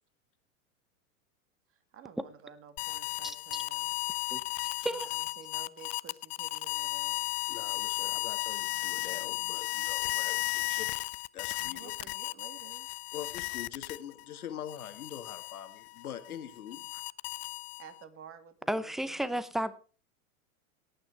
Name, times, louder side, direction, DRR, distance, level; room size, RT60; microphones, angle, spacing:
voice 1, 1.7-3.9 4.9-7.3 10.7-10.8 11.7-12.9 16.8-17.0 17.8-19.4, right 7 dB, 30° right, 10 dB, 2.1 m, -52 dB
sound 1, 2.8-14.2 14.7-18.0, left 21 dB, 50° left, 0.5 m, -35 dB
voice 2, 7.5-10.9 11.3-11.9 13.1-17.0, left 9 dB, 85° left, 9 dB, 2.1 m, -44 dB
voice 3, 18.7-19.8, right 1 dB, ahead, 16 dB, 0.6 m, -32 dB
17.5 x 9.1 x 4.6 m, 0.40 s
hypercardioid pair, 115°, 43 cm